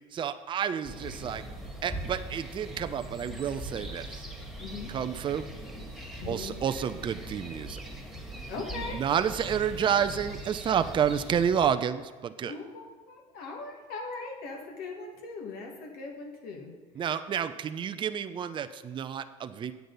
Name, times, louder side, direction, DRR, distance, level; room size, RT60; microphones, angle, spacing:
voice 1, 0.1-1.4 1.8-4.2 4.9-5.5 6.3-7.8 8.9-12.5 17.0-19.7, right 8 dB, 30° right, 10 dB, 0.5 m, -30 dB
sound 1, 0.8-11.7, right 1 dB, ahead, 1.8 m, -41 dB
voice 2, 4.6-4.9 6.2-6.6 8.5-9.0 12.4-16.7, left 4 dB, 65° left, 0 dB, 1.9 m, -40 dB
9.3 x 8.1 x 4.0 m, 1.4 s
supercardioid pair, 100°, 17 cm